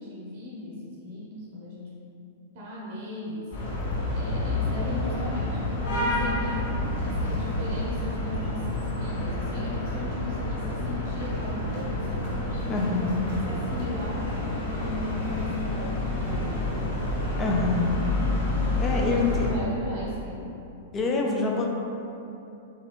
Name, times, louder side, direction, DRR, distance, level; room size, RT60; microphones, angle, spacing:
voice 1, 0.0-2.0 2.5-3.5 4.1-6.8 7.0-12.3 12.9-13.1 13.4-17.0 18.6-20.5, left 2 dB, 45° right, -5 dB, 0.7 m, -37 dB
sound 1, 3.5-19.5, left 1 dB, 60° left, 0.9 m, -29 dB
voice 2, 12.7-13.2 17.4-18.0 18.8-19.5 20.9-21.7, left 3 dB, 25° left, 0 dB, 0.4 m, -26 dB
3.6 x 2.3 x 3.3 m, 2.7 s
figure-of-eight pair, 100°, 0 cm